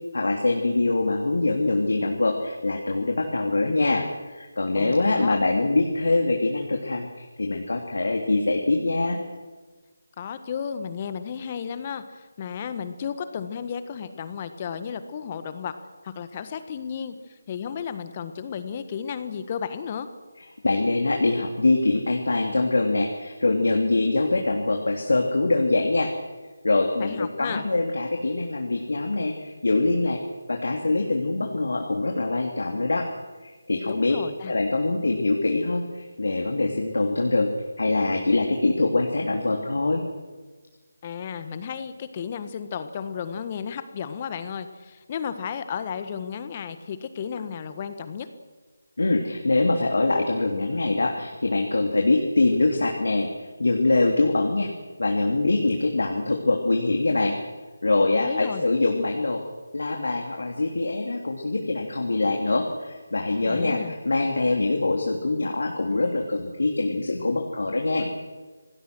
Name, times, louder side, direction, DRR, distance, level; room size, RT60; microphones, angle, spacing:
voice 1, 0.1-9.2 20.6-26.1 26.6-30.2 30.5-33.1 33.4-34.2 34.5-37.5 37.8-40.0 49.0-53.3 53.6-54.7 55.0-57.3 57.8-59.4 59.7-68.1, left 2 dB, 65° left, 2 dB, 3.1 m, -24 dB
voice 2, 4.7-5.4 10.2-15.7 16.0-20.1 27.0-27.6 33.9-34.5 41.0-48.3 58.1-58.6 63.4-63.9, left 7 dB, 30° left, 11 dB, 1.5 m, -33 dB
27.0 x 19.0 x 6.3 m, 1.3 s
figure-of-eight pair, 160°, 0 cm